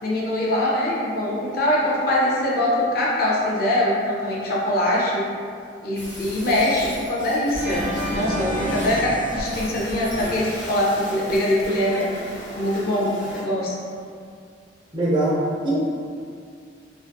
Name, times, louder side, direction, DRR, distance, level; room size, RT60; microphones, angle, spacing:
voice 1, 0.0-5.3 5.8-7.8 8.1-13.7, left 1 dB, 55° left, -5 dB, 0.5 m, -23 dB
sound 1, 5.9-13.4, equal, 70° left, 1.0 m, -36 dB
Organ, 7.6-10.7, equal, 85° right, 0.5 m, -30 dB
voice 2, 14.9-15.8, right 1 dB, 25° right, -9 dB, 0.5 m, -22 dB
2.5 x 2.4 x 2.2 m, 2.3 s
head